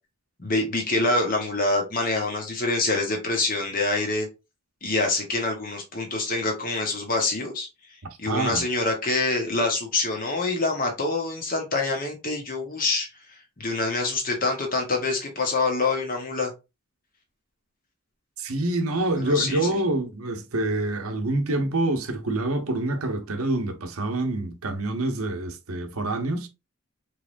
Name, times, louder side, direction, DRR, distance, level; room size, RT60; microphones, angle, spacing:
voice 1, 0.4-4.3 4.8-7.7 8.2-16.5 19.2-19.6, left 2 dB, 40° left, 1.3 m, -26 dB
voice 2, 8.3-8.6 18.4-26.5, right 2 dB, 80° right, 0.9 m, -26 dB
4.5 x 3.3 x 2.6 m
head